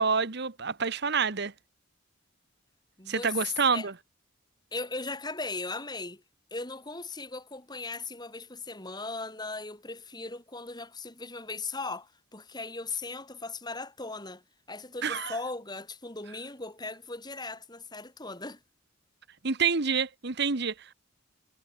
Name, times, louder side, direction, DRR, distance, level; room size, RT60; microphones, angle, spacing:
voice 1, 0.0-1.5 3.1-3.9 15.0-15.3 19.4-20.9, right 5 dB, 55° right, 1.3 m, -27 dB
voice 2, 3.0-3.9 4.7-6.2 6.5-14.4 14.7-18.6, left 3 dB, 20° left, 6.4 m, -38 dB
head